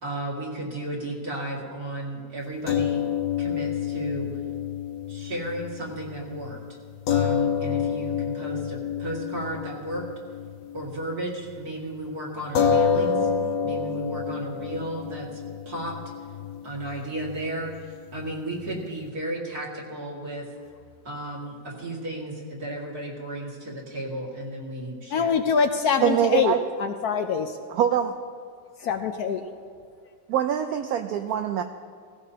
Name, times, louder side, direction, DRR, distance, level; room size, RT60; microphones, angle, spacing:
voice 1, 0.0-3.0 3.4-4.3 5.1-6.6 7.1-10.0 10.7-13.3 13.6-15.4 15.7-16.0 16.6-20.5 21.0-25.3, right 1 dB, 55° right, -3 dB, 2.7 m, -34 dB
sound 1, 2.7-11.2 11.5-11.7 12.5-19.1, left 7 dB, 85° left, 1.5 m, -29 dB
voice 2, 25.1-26.5 26.8-27.6 28.8-29.4, left 6 dB, 70° left, 6 dB, 1.0 m, -24 dB
voice 3, 26.0-26.6 27.7-28.1 30.3-31.6, right 10 dB, 70° right, 6 dB, 0.9 m, -23 dB
16.5 x 16.0 x 2.8 m, 2.1 s
omnidirectional pair, 2.0 m